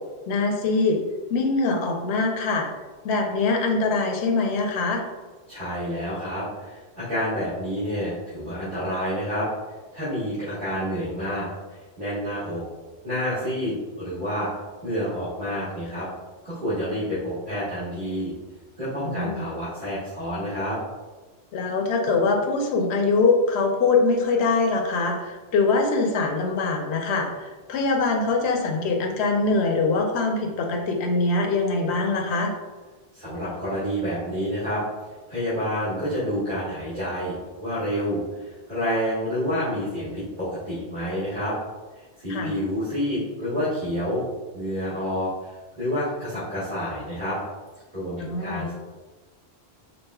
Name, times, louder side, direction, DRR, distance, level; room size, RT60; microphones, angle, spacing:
voice 1, 0.3-1.0 1.3-2.7 3.0-5.0 19.0-19.5 21.5-32.5 42.3-42.5 48.2-48.7, left 3 dB, 75° left, 2 dB, 0.9 m, -23 dB
voice 2, 5.5-9.5 9.9-12.6 13.0-14.5 14.8-16.1 16.4-18.3 18.8-20.8 33.1-34.8 35.3-41.5 42.0-44.2 44.5-45.5 45.8-47.4 47.9-48.7, equal, 45° right, -14 dB, 1.8 m, -28 dB
5.3 x 3.7 x 2.3 m, 1.3 s
omnidirectional pair, 1.1 m